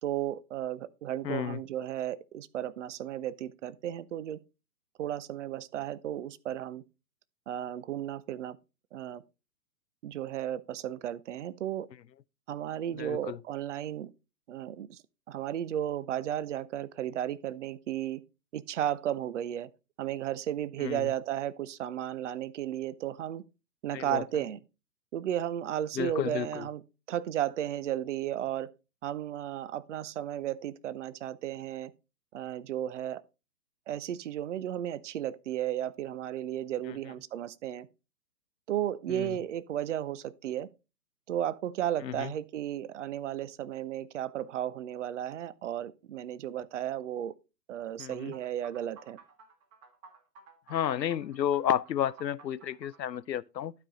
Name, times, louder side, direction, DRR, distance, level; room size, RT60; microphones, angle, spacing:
voice 1, 0.0-4.4 5.0-6.8 7.5-8.6 8.9-9.2 10.0-11.9 12.5-14.1 14.5-15.0 15.3-18.2 18.5-19.7 20.0-23.4 23.8-24.6 25.1-26.8 27.1-28.7 29.0-31.9 32.3-33.2 33.9-37.9 38.7-40.7 41.3-47.3 47.7-49.2, right 11 dB, 50° right, 0.6 m, -34 dB
voice 2, 1.2-1.6 13.0-13.4 20.8-21.1 23.9-24.2 26.0-26.6 39.1-39.3 42.0-42.3 48.0-48.3 50.7-53.7, left 10 dB, 85° left, 0.7 m, -31 dB
sound 1, 48.1-53.2, right 5 dB, 25° right, 1.6 m, -54 dB
12.0 x 4.9 x 3.8 m
hypercardioid pair, 135°, 49 cm